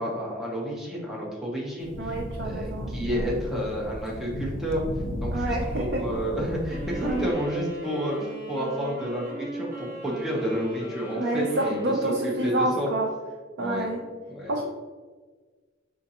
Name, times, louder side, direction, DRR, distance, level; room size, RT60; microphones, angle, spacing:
voice 1, 0.0-1.9 2.4-4.8 5.2-11.8 12.0-12.9 13.6-13.9 14.3-14.5, equal, ahead, -5 dB, 0.9 m, -30 dB
sound 1, 1.8-7.3, equal, 75° left, 0.7 m, -34 dB
voice 2, 2.0-3.4 5.3-6.0 7.0-7.3 11.1-13.1 13.6-14.0 14.5-14.6, right 1 dB, 65° right, -1 dB, 0.5 m, -28 dB
sound 2, 6.7-13.1, right 1 dB, 45° right, 1.2 m, -39 dB
5.1 x 3.7 x 2.9 m, 1.4 s
head